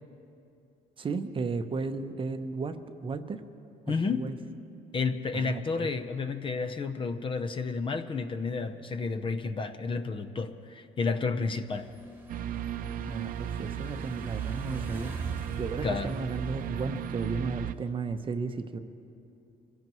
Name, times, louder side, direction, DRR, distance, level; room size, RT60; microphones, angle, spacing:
voice 1, 1.0-3.4 3.9-4.4 5.3-5.9 13.1-15.1 15.6-18.8, right 4 dB, 30° right, 8 dB, 0.8 m, -34 dB
voice 2, 3.9-4.3 4.9-11.9 15.8-16.1, left 4 dB, 30° left, 9 dB, 0.7 m, -31 dB
sound 1, 11.7-17.9, right 3 dB, 10° right, 1.4 m, -44 dB
sound 2, 12.3-17.7, right 10 dB, 55° right, 0.5 m, -36 dB
24.5 x 16.5 x 3.1 m, 2.7 s
cardioid pair, 110°, 17 cm